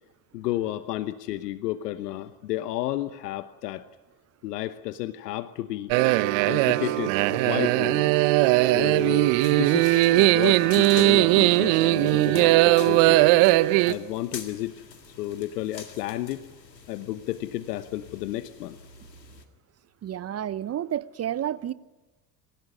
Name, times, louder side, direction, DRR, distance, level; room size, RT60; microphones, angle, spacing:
voice 1, 0.3-3.9 4.4-5.9 6.4-8.1 8.6-13.4 13.9-14.8 15.2-16.5 16.9-18.8, left 14 dB, 70° left, 1.0 m, -32 dB
sound 1, 5.9-13.9, right 18 dB, 60° right, 1.1 m, -19 dB
sound 2, 8.5-19.4, left 5 dB, 90° left, 2.1 m, -46 dB
voice 2, 20.0-21.7, right 11 dB, 30° right, 0.8 m, -30 dB
27.5 x 16.5 x 9.6 m
hypercardioid pair, 70°, 48 cm